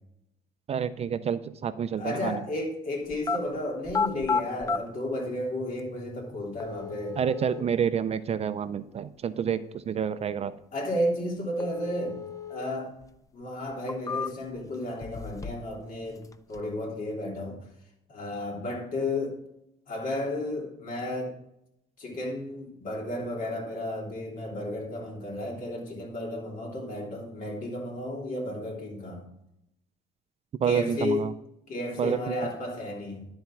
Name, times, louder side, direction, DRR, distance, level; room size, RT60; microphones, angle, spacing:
voice 1, 0.7-2.4 7.1-10.6 30.6-31.3 32.0-32.5, right 7 dB, 40° right, 12 dB, 0.5 m, -28 dB
voice 2, 2.0-7.2 10.7-12.2 12.5-12.9 13.3-17.6 18.1-19.4 19.9-21.3 22.0-29.2 30.6-31.3 31.7-33.2, left 1 dB, 55° left, -1 dB, 3.3 m, -33 dB
sound 1, 3.1-3.4 3.8-4.8 5.8-5.9 6.6-7.6 11.6-12.6 13.0-13.1 13.7-14.6 15.0-15.7 16.0-16.6, left 5 dB, 20° left, 0.5 m, -32 dB
12.0 x 4.3 x 5.9 m, 0.80 s
cardioid pair, 110°, 17 cm